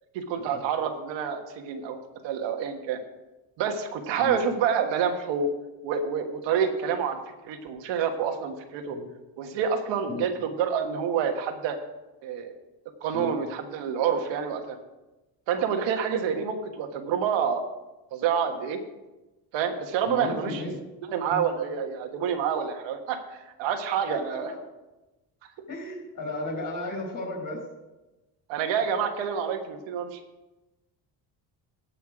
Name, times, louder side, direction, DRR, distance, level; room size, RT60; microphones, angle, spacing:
voice 1, 0.1-3.0 3.6-5.5 5.8-7.2 7.4-9.0 9.4-11.8 12.2-12.5 13.0-14.8 15.5-17.6 18.1-18.8 19.5-20.6 21.1-24.5 28.5-30.2, right 7 dB, 85° right, 5 dB, 1.5 m, -28 dB
voice 2, 20.1-20.8 21.3-21.4 24.1-24.6 25.7-27.6, left 2 dB, 45° left, -1 dB, 4.7 m, -34 dB
17.5 x 5.8 x 4.8 m, 1.1 s
cardioid pair, 135°, 44 cm